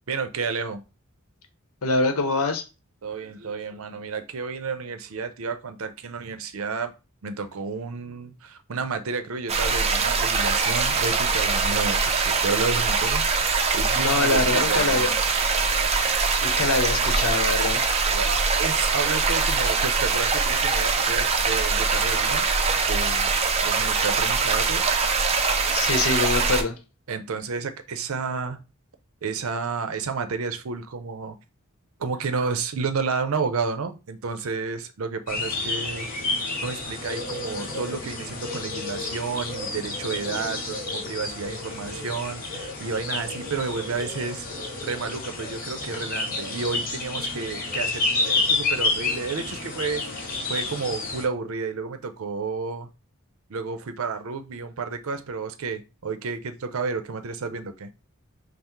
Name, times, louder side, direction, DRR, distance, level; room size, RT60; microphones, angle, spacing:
voice 1, 0.1-0.8 3.0-6.9 7.2-13.3 13.7-15.2 18.1-22.5 22.9-23.3 23.6-25.3 27.1-28.6 29.2-31.4 32.0-36.1 36.6-44.5 44.8-52.9 53.5-57.9, right 4 dB, 75° right, 0.5 m, -31 dB
voice 2, 1.8-2.6 14.0-15.1 16.4-17.9 25.7-26.8, left 3 dB, 90° left, 0.8 m, -24 dB
sound 1, 9.5-26.6, right 4 dB, 30° right, 0.5 m, -23 dB
sound 2, 35.3-51.3, left 3 dB, 40° left, 0.8 m, -30 dB
5.5 x 2.0 x 3.0 m
head